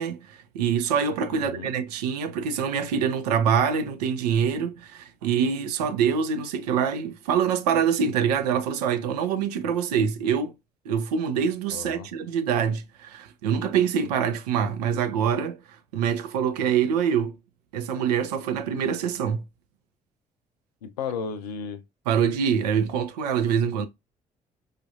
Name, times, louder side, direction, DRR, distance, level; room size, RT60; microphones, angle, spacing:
voice 1, 0.0-10.5 10.9-15.6 15.9-17.4 17.7-19.4 22.1-23.9, right 7 dB, 75° right, 0.5 m, -25 dB
voice 2, 1.3-1.7 11.7-12.1 20.8-21.8, left 6 dB, 80° left, 0.5 m, -34 dB
5.0 x 2.5 x 2.6 m
figure-of-eight pair, 45°, 20 cm